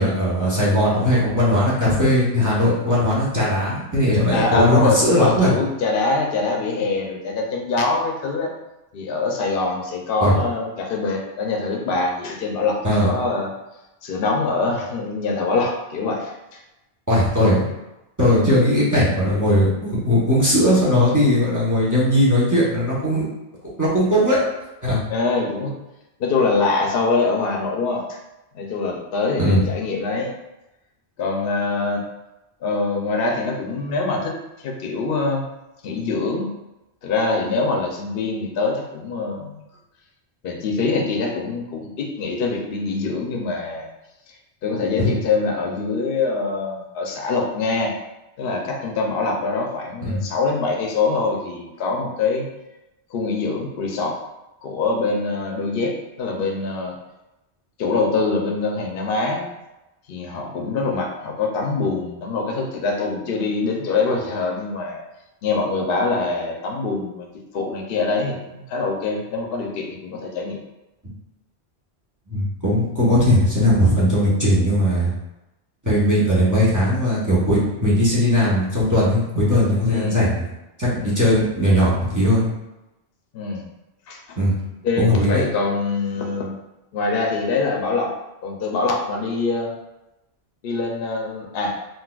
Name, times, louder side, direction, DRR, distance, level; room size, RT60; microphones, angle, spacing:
voice 1, 0.0-5.5 10.2-10.3 12.8-13.1 17.1-17.7 18.2-23.2 23.8-24.4 24.8-25.0 29.4-29.7 45.0-45.1 50.0-50.3 72.3-75.1 75.8-80.4 80.8-82.4 84.4-84.6 85.0-85.4, equal, 20° right, -7 dB, 0.7 m, -18 dB
voice 2, 4.3-8.5 8.9-13.5 14.0-16.6 25.1-25.7 26.2-28.2 28.5-30.3 31.2-32.0 32.6-34.3 34.6-35.5 35.8-36.5 37.0-39.6 40.4-43.9 44.6-47.9 48.4-52.5 53.1-54.2 54.6-57.0 57.8-59.5 60.1-65.0 65.4-67.3 67.5-70.6 79.9-80.2 81.0-81.2 83.3-83.6 84.1-84.4 84.8-86.5 86.9-88.1 88.4-89.7 90.6-91.7, left 3 dB, 65° left, 0 dB, 0.7 m, -24 dB
3.9 x 2.4 x 2.3 m, 0.97 s
omnidirectional pair, 1.1 m